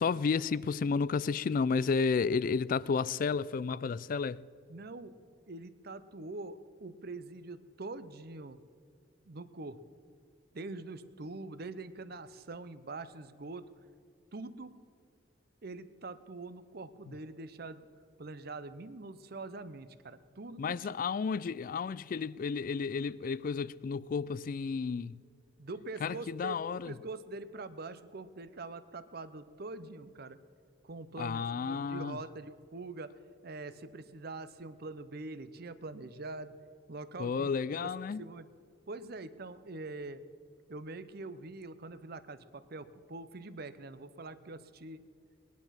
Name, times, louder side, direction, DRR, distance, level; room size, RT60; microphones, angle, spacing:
voice 1, 0.0-4.4 17.1-17.2 20.6-25.2 26.0-26.9 31.2-32.2 37.2-38.2, left 5 dB, 45° left, 0.3 m, -32 dB
voice 2, 4.7-5.1 5.5-8.6 9.3-9.8 10.5-13.7 14.3-14.7 15.6-17.9 18.2-21.0 25.6-26.6 26.9-30.4 30.8-33.1 33.4-36.5 36.9-37.9 38.2-38.5 38.9-40.2 40.7-45.0, right 3 dB, 55° right, 0.7 m, -44 dB
19.5 x 10.5 x 5.8 m
head